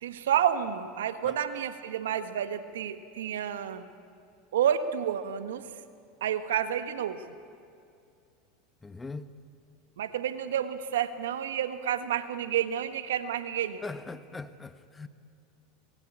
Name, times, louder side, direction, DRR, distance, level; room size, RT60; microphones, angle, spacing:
voice 1, 0.0-3.9 4.5-5.7 6.2-7.2 10.0-13.8, right 9 dB, 80° right, 1.4 m, -30 dB
voice 2, 8.8-9.3 13.8-15.1, left 3 dB, 15° left, 1.3 m, -40 dB
27.0 x 21.0 x 8.8 m
hypercardioid pair, 90°, 0 cm